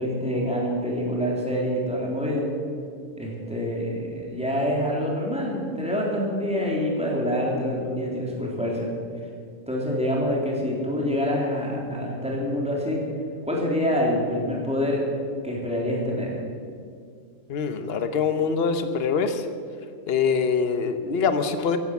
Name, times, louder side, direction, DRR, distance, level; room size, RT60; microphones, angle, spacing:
voice 1, 0.0-2.5 3.2-8.9 9.7-13.0 13.5-15.0 15.4-16.4, equal, 5° right, -3 dB, 3.4 m, -26 dB
voice 2, 17.5-19.5 20.1-21.8, left 5 dB, 50° left, 9 dB, 1.2 m, -24 dB
15.5 x 11.5 x 7.2 m, 2.3 s
omnidirectional pair, 1.4 m